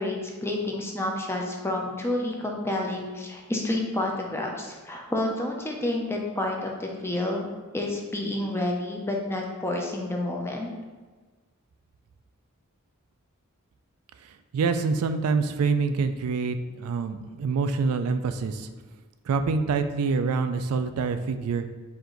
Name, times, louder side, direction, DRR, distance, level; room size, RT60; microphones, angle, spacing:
voice 1, 0.0-10.7, left 1 dB, 10° left, 0 dB, 0.5 m, -29 dB
voice 2, 14.5-18.7 19.3-21.7, right 4 dB, 85° right, 9 dB, 0.3 m, -26 dB
4.7 x 2.6 x 3.8 m, 1.3 s
head